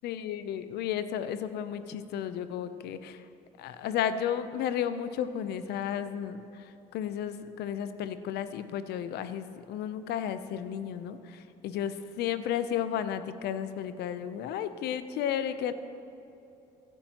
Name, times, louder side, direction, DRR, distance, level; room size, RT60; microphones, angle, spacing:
voice 1, 0.0-3.2 3.6-6.6 6.9-15.7, left 9 dB, 70° left, 12 dB, 0.6 m, -33 dB
15.5 x 11.5 x 3.0 m, 2.9 s
supercardioid pair, 80°, 17 cm